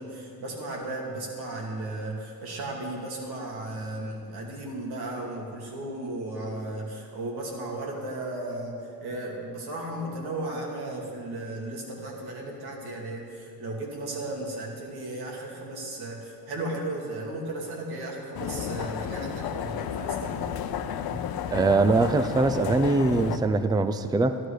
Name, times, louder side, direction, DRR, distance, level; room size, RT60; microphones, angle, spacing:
voice 1, 0.0-20.4, right 2 dB, 75° right, -1 dB, 2.6 m, -35 dB
sound 1, 18.4-23.4, left 9 dB, 70° left, 0.7 m, -32 dB
voice 2, 21.5-24.4, right 3 dB, 10° right, 10 dB, 0.5 m, -22 dB
12.5 x 11.5 x 5.0 m, 2.5 s
cardioid pair, 115°, 38 cm